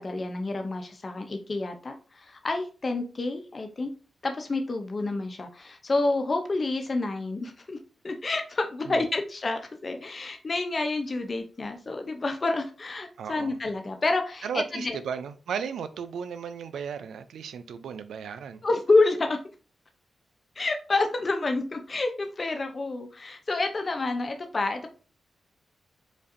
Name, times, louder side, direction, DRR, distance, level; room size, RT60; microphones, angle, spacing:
voice 1, 0.0-3.9 4.2-7.8 8.0-15.0 18.6-19.4 20.6-24.9, left 3 dB, 40° left, 0.6 m, -28 dB
voice 2, 13.2-13.6 14.4-18.6, right 7 dB, 90° right, 0.4 m, -35 dB
5.1 x 2.5 x 2.6 m
cardioid pair, 70°, 0 cm